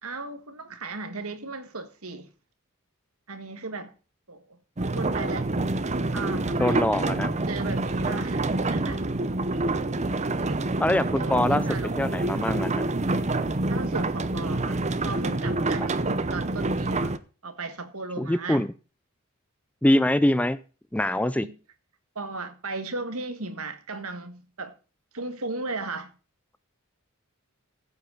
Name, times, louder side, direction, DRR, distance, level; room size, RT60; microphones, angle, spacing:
voice 1, 0.0-2.3 3.3-3.9 4.3-5.5 6.1-6.9 7.5-9.1 10.4-10.7 11.1-12.4 13.7-14.8 15.0-18.7 21.3-21.6 22.1-24.7 25.1-26.1, right 3 dB, 70° right, 1.7 m, -36 dB
sound 1, 4.8-17.2, right 2 dB, 30° right, 0.8 m, -27 dB
voice 2, 6.6-7.3 10.8-11.6 12.0-12.8 15.8-15.9 18.2-18.7 19.8-20.6 20.9-21.5, left 1 dB, 5° left, 0.5 m, -23 dB
15.0 x 8.2 x 3.9 m
head